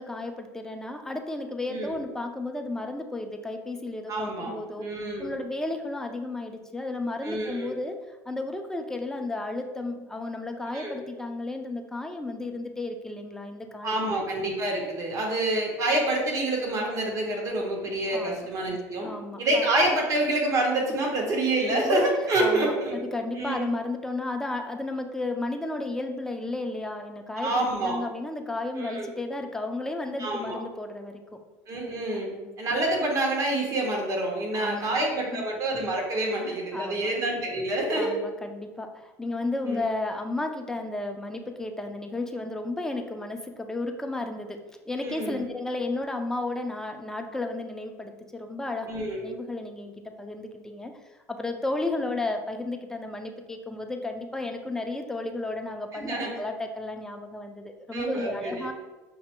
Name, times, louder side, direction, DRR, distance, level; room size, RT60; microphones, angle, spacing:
voice 1, 0.0-14.2 18.1-18.5 19.0-19.7 21.7-22.0 22.4-31.4 32.1-32.5 34.5-35.0 35.3-35.4 36.4-37.1 37.9-44.6 44.9-48.9 49.2-50.9 51.3-58.7, left 2 dB, 5° left, 4 dB, 0.5 m, -33 dB
voice 2, 4.1-5.3 7.2-7.7 10.7-11.0 13.8-19.1 19.4-23.0 23.4-23.7 27.4-28.0 28.8-29.1 30.2-30.6 31.7-32.3 32.6-38.2 39.6-39.8 45.0-45.4 48.9-49.3 55.9-56.3 57.9-58.7, right 1 dB, 40° right, -1 dB, 1.3 m, -27 dB
5.9 x 2.8 x 2.2 m, 1.2 s
hypercardioid pair, 80°, 9 cm